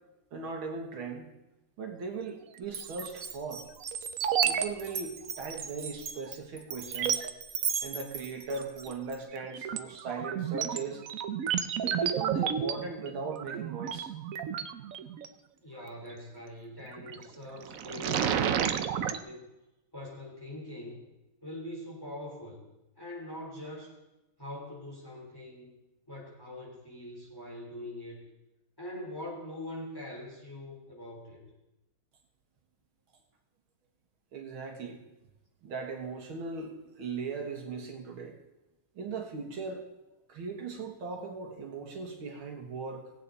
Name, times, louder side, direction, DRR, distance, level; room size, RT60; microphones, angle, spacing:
voice 1, 0.3-1.3 1.8-3.7 4.4-7.3 7.8-11.1 11.8-14.1 34.3-35.0 35.6-38.3 39.0-39.9 40.3-43.1, right 4 dB, 90° right, 2 dB, 2.5 m, -38 dB
Glass, 2.7-9.2, right 6 dB, 50° right, 1.2 m, -38 dB
sound 1, 2.8-3.3 3.8-4.7 4.9-5.0 5.5-5.6 6.3-6.4 6.8-7.3 8.6-8.9 9.3-15.3 16.9-17.2 17.6-19.2, right 8 dB, 65° right, 0.8 m, -31 dB
voice 2, 15.6-19.4 19.9-21.1 21.4-22.6 23.0-23.9 24.4-25.7 26.1-28.2 28.8-31.5, left 1 dB, 10° left, -4 dB, 4.0 m, -43 dB
19.0 x 8.5 x 4.1 m, 0.97 s
omnidirectional pair, 2.2 m